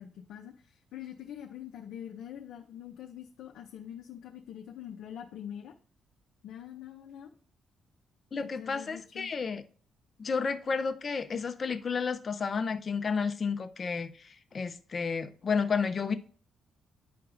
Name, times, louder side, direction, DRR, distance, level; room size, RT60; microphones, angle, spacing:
voice 1, 0.0-5.7 6.4-7.3 8.4-9.3, left 10 dB, 80° left, 0.6 m, -44 dB
voice 2, 8.3-9.6 10.2-16.1, left 5 dB, 40° left, 0.6 m, -31 dB
10.5 x 4.6 x 2.5 m
cardioid pair, 90°, 0 cm